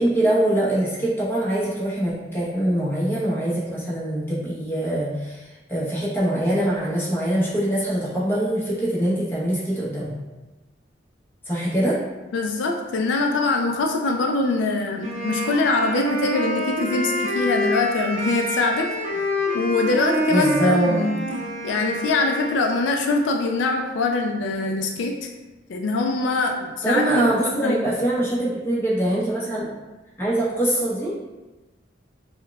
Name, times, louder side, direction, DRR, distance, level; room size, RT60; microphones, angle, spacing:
voice 1, 0.0-10.1 11.4-12.0 20.3-21.1 26.8-29.7 30.2-31.1, right 1 dB, 15° left, -8 dB, 0.9 m, -23 dB
voice 2, 12.3-21.2 21.6-25.3 25.7-27.8, left 3 dB, 85° left, 2 dB, 0.4 m, -23 dB
Wind instrument woodwind instrument, 15.0-22.9, equal, 35° right, 0.6 m, -27 dB
4.5 x 2.2 x 2.3 m, 1.1 s
head